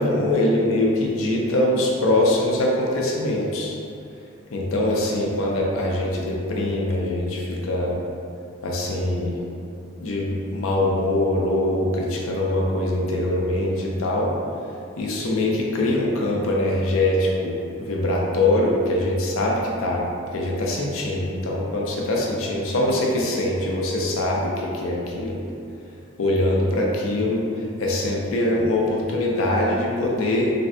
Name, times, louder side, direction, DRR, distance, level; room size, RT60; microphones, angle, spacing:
voice 1, 0.0-3.8 4.5-8.0 8.6-9.4 10.0-14.3 15.0-20.0 20.3-25.4 26.2-27.4 27.8-30.5, left 1 dB, 85° left, -2 dB, 0.5 m, -23 dB
3.4 x 2.1 x 2.6 m, 2.5 s
head